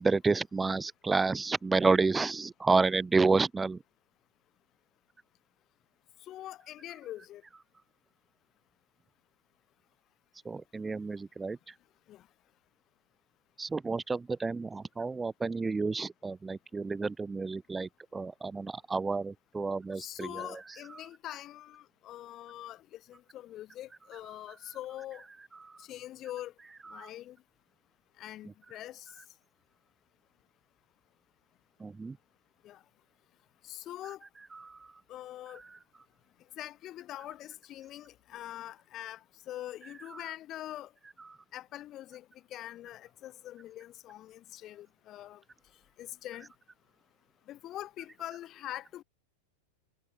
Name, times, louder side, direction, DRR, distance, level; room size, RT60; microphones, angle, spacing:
voice 1, 0.0-3.8 10.5-11.7 13.6-20.6 20.9-21.0 25.6-25.8 26.9-27.1 31.8-32.2 34.5-34.9 40.1-40.2 41.3-41.4, right 4 dB, 10° right, 0.6 m, -30 dB
voice 2, 6.3-7.4 12.1-12.2 20.0-25.2 25.8-26.5 26.9-27.4 28.2-29.1 32.6-32.8 33.6-34.2 35.1-35.6 36.6-40.9 41.5-42.3 42.5-45.4 46.0-46.5 47.5-49.0, left 13 dB, 35° left, 7.7 m, -43 dB
figure-of-eight pair, 90°, 0 cm